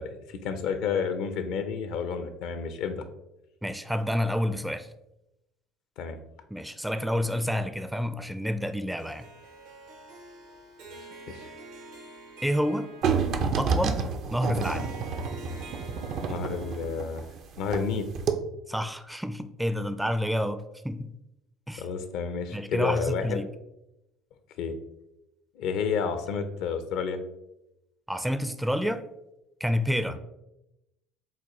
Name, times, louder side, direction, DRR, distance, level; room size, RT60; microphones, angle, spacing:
voice 1, 0.0-3.0 6.0-6.2 11.3-11.5 16.2-17.3 17.6-18.1 21.8-23.4 24.6-24.8 25.6-27.2, left 6 dB, 65° left, 9 dB, 0.5 m, -30 dB
voice 2, 3.6-4.9 6.5-9.3 12.4-12.9 13.6-14.0 14.3-14.9 18.7-21.1 21.7-21.8 22.5-23.5 28.1-29.1 29.6-30.2, equal, 5° right, 10 dB, 0.4 m, -29 dB
Harp, 9.0-17.4, right 2 dB, 75° right, 0.8 m, -47 dB
sound 1, 13.0-17.9 18.2-18.3, right 5 dB, 60° right, 0.5 m, -29 dB
7.2 x 2.4 x 2.9 m, 0.90 s
hypercardioid pair, 65°, 0 cm